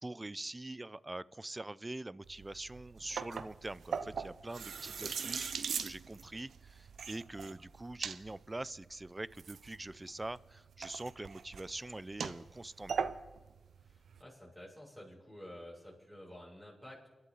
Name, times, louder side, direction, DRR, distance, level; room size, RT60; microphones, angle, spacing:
voice 1, 0.0-5.5 5.8-13.1, right 2 dB, 30° right, 20 dB, 0.5 m, -44 dB
sound 1, 2.2-14.2, right 6 dB, 85° right, 0.6 m, -42 dB
voice 2, 13.8-17.1, left 1 dB, 10° right, -4 dB, 6.9 m, -51 dB
30.0 x 11.5 x 4.1 m, 1.2 s
cardioid pair, 40°, 0 cm